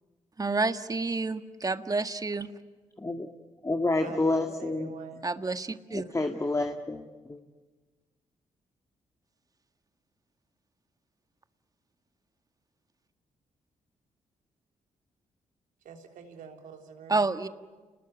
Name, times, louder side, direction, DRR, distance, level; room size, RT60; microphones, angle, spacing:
voice 1, 0.4-2.5 5.2-6.1 17.1-17.5, right 3 dB, 30° right, 10 dB, 1.7 m, -29 dB
voice 2, 3.0-3.3 3.6-4.9 5.9-7.4, left 2 dB, 25° left, 5 dB, 2.0 m, -29 dB
voice 3, 4.0-5.2 15.8-17.2, right 6 dB, 80° right, 4 dB, 3.5 m, -45 dB
29.5 x 20.5 x 9.2 m, 1.3 s
supercardioid pair, 55°, 13 cm